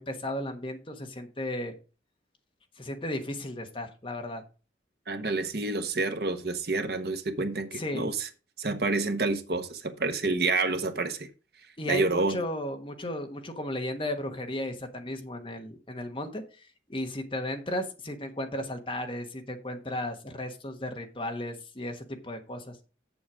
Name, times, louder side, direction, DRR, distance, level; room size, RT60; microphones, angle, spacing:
voice 1, 0.0-1.7 2.8-4.4 7.7-8.1 11.8-22.8, left 1 dB, 30° left, 5 dB, 1.3 m, -35 dB
voice 2, 5.1-8.3 8.6-11.3 11.9-12.4, right 3 dB, 60° right, 8 dB, 1.1 m, -28 dB
7.7 x 7.2 x 4.9 m, 0.33 s
head